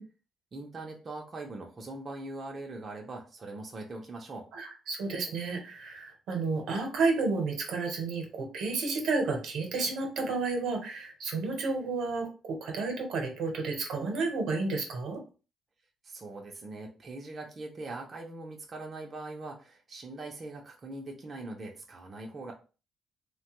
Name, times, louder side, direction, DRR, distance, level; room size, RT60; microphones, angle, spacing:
voice 1, 0.5-4.5 16.0-22.5, right 2 dB, 40° right, 0 dB, 0.6 m, -41 dB
voice 2, 4.5-15.2, right 3 dB, 80° right, 3 dB, 0.9 m, -31 dB
3.2 x 2.2 x 2.9 m, 0.34 s
cardioid pair, 90°, 0 cm